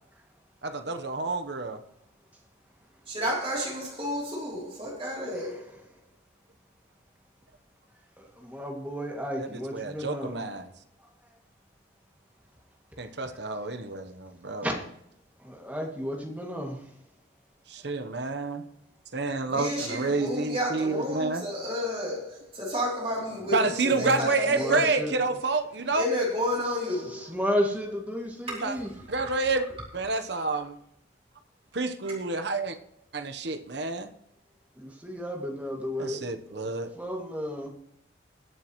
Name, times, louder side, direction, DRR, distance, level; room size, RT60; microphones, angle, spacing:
voice 1, 0.6-1.8 9.7-10.6 13.0-14.7 17.7-18.6 19.1-21.4 23.5-26.1 28.6-28.8 29.1-29.7 29.9-30.8 31.7-32.8 33.1-34.1 36.0-37.0, right 3 dB, 60° right, 9 dB, 1.0 m, -29 dB
voice 2, 3.1-5.6 19.5-24.9 25.9-27.3 28.5-28.6, equal, 30° right, -4 dB, 3.2 m, -31 dB
voice 3, 5.3-5.8 8.2-10.5 13.3-13.4 14.6-14.7 15.4-16.9 23.2-25.4 26.6-28.9 34.8-36.7 36.9-37.7, equal, 10° right, 0 dB, 2.2 m, -34 dB
20.5 x 7.4 x 3.1 m, 0.76 s
head